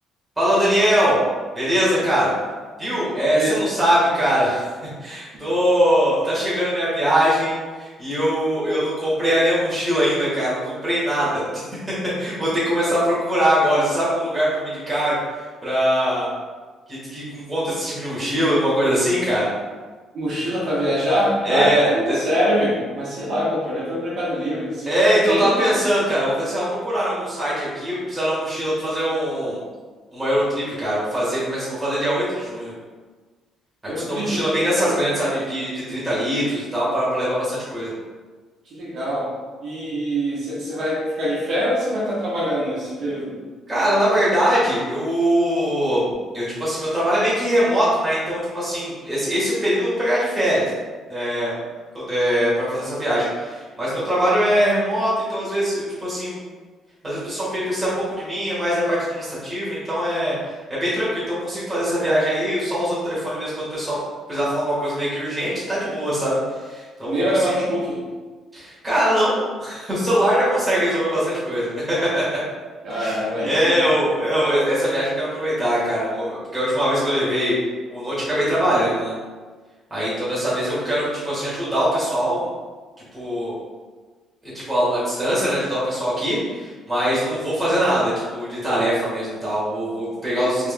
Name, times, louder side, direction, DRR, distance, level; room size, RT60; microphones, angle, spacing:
voice 1, 0.4-1.2 1.5-2.3 2.8-4.7 5.0-11.6 12.2-15.2 15.6-16.3 16.9-19.5 21.4-22.2 24.9-29.6 30.1-32.7 34.0-37.9 43.7-46.0 46.3-50.6 51.1-51.5 51.9-56.4 57.0-57.9 58.2-60.3 60.7-64.0 64.3-66.4 66.7-67.2 68.5-72.4 73.0-73.2 73.4-77.5 77.9-79.1 79.9-82.5 83.1-83.6 84.4-90.7, equal, 10° right, -9 dB, 1.5 m, -22 dB
voice 2, 20.1-25.7 33.9-34.9 38.7-39.3 39.6-43.3 67.1-68.0 72.8-73.8, equal, 50° right, -8 dB, 1.1 m, -24 dB
4.3 x 3.5 x 2.2 m, 1.4 s
cardioid pair, 170°, 0 cm